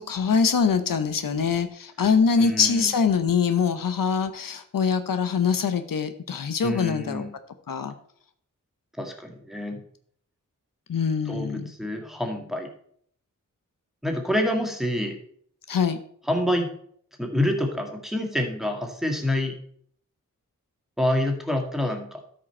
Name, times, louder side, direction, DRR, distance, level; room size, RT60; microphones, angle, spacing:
voice 1, 0.0-7.2 7.7-7.9 10.9-11.7 15.7-16.0, left 6 dB, 80° left, 10 dB, 0.8 m, -23 dB
voice 2, 2.4-2.9 6.6-7.3 9.0-9.8 11.3-12.7 14.0-15.2 16.3-16.7 17.2-19.6 21.0-22.2, left 1 dB, ahead, 2 dB, 1.9 m, -27 dB
12.5 x 5.2 x 4.4 m, 0.63 s
wide cardioid pair, 65°, 33 cm